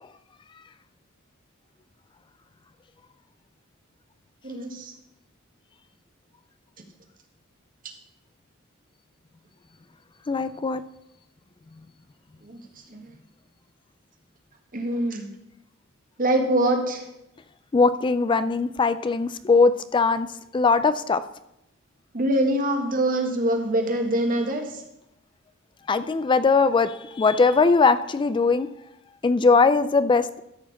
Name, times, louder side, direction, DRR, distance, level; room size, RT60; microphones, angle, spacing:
voice 1, 4.4-4.9 12.4-12.6 12.9-13.0 14.7-15.3 16.2-17.0 22.1-24.8, right 1 dB, 45° right, 3 dB, 1.6 m, -24 dB
voice 2, 10.3-10.8 17.7-20.3 20.5-21.2 25.9-28.7 29.2-30.4, left 4 dB, 25° left, 13 dB, 0.3 m, -20 dB
13.0 x 4.6 x 7.2 m, 0.85 s
head